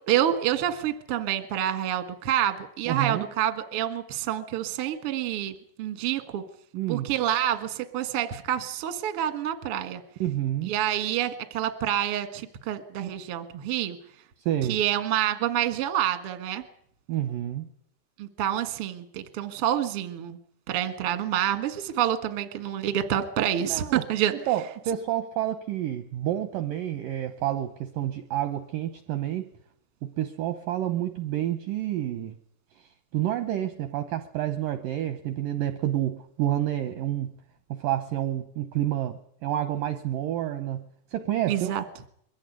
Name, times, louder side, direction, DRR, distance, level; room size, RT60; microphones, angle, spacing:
voice 1, 0.1-5.5 5.8-6.4 6.9-10.0 10.7-14.0 14.7-16.6 18.2-20.4 20.7-24.3 41.5-41.8, right 11 dB, 60° right, 9 dB, 1.5 m, -27 dB
voice 2, 2.9-3.3 6.7-7.1 10.2-10.7 14.5-14.8 17.1-17.7 23.6-24.0 24.5-29.5 30.0-32.4 33.1-37.3 37.7-40.8 41.1-41.8, right 12 dB, 75° right, 9 dB, 2.1 m, -29 dB
22.5 x 15.0 x 9.3 m, 0.69 s
omnidirectional pair, 5.1 m